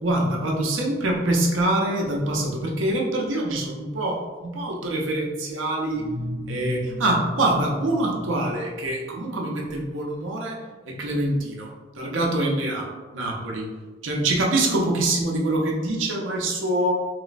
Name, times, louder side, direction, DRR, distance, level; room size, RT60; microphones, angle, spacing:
voice 1, 0.0-6.1 6.5-10.6 10.9-12.9 13.1-13.7 14.0-16.9, right 1 dB, 85° right, -1 dB, 0.6 m, -25 dB
sound 1, 5.9-9.6, left 1 dB, 5° right, 0.5 m, -35 dB
3.1 x 3.0 x 2.5 m, 1.3 s
head